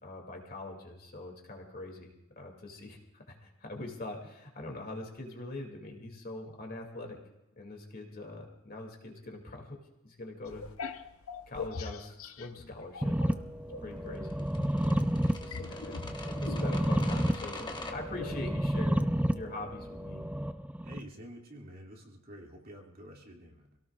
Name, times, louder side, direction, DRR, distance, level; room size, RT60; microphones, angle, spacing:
voice 1, 0.0-7.2 7.6-9.8 10.0-11.0 11.5-13.5 13.8-14.4 14.8-15.0 15.4-19.0 19.3-20.2, left 2 dB, 45° left, 1 dB, 2.6 m, -43 dB
sound 1, 10.5-13.3 13.7-18.5, left 4 dB, 70° left, 0.8 m, -43 dB
sound 2, 13.0-21.0, equal, 5° right, 0.5 m, -31 dB
voice 2, 13.8-14.1 18.2-18.6 20.8-23.8, equal, 45° right, -1 dB, 2.4 m, -50 dB
sound 3, 14.3-17.9, left 2 dB, 20° left, 1.3 m, -44 dB
26.5 x 17.5 x 2.4 m, 0.94 s
head